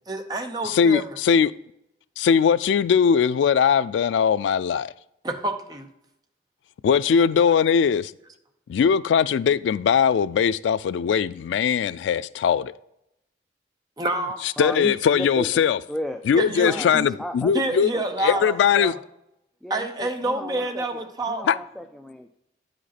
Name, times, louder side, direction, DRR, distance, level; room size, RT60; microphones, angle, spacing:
voice 1, 0.1-1.1 5.2-5.9 14.0-14.4 16.4-17.1 17.5-18.9 19.7-21.4, right 2 dB, 20° right, 0.7 m, -28 dB
voice 2, 0.7-1.5 2.2-4.9 6.8-8.1 8.7-12.7 14.6-15.8 16.3-17.9 18.2-18.9 21.5-21.6, left 7 dB, 90° left, 0.3 m, -20 dB
voice 3, 14.6-15.6 15.9-16.2 16.6-16.9 17.2-18.5 19.6-21.0 21.3-22.3, equal, ahead, 0.3 m, -34 dB
8.9 x 5.1 x 4.2 m
head